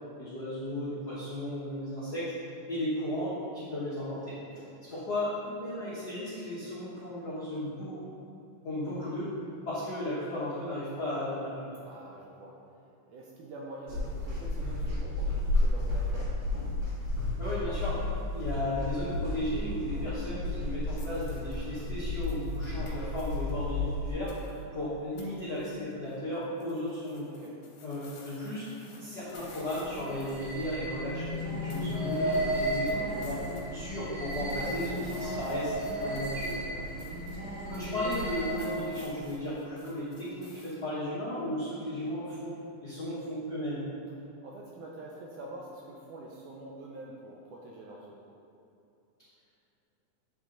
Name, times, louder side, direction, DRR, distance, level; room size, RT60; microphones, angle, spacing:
voice 1, 0.2-2.3 2.7-4.3 4.9-8.0 8.6-9.3 9.6-11.7 17.4-27.3 27.8-28.7 29.0-33.4 33.7-36.6 37.7-42.5 42.8-43.8, left 1 dB, 85° left, -11 dB, 0.8 m, -35 dB
voice 2, 4.4-4.7 11.8-16.4 27.3-27.6 36.5-37.0 44.2-48.2, right 1 dB, 80° right, -2 dB, 1.8 m, -46 dB
sound 1, 13.9-24.1, left 2 dB, 40° right, 1.1 m, -32 dB
sound 2, 21.0-23.5 24.3-24.6 25.2-25.3 25.5-26.1 26.4-31.4 31.7-33.7 33.9-40.8, left 3 dB, 70° left, 1.7 m, -54 dB
sound 3, 29.2-38.9, equal, 60° right, 2.1 m, -34 dB
9.3 x 3.7 x 3.8 m, 2.8 s
omnidirectional pair, 4.1 m